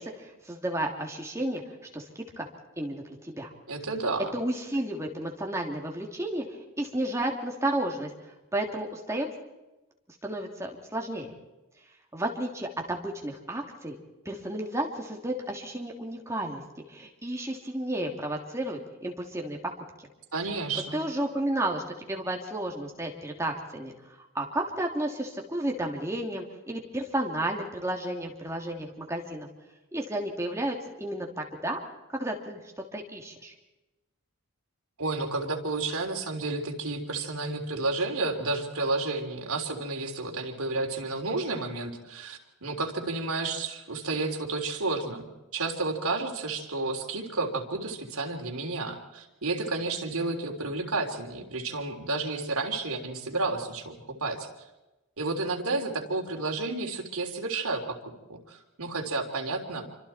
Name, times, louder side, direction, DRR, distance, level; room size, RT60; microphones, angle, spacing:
voice 1, 0.0-1.6 1.9-2.5 2.8-3.5 4.3-6.4 6.8-8.1 8.5-9.3 10.2-11.3 12.1-14.0 14.2-16.6 16.9-19.7 20.9-21.8 22.1-29.5 29.9-31.8 32.1-32.6 32.9-33.5, right 1 dB, 15° right, 0 dB, 3.0 m, -32 dB
voice 2, 3.7-4.3 20.3-21.0 35.0-54.5 55.2-58.0 58.3-59.9, right 3 dB, 80° right, 2 dB, 3.5 m, -31 dB
27.5 x 25.0 x 4.5 m, 1.0 s
head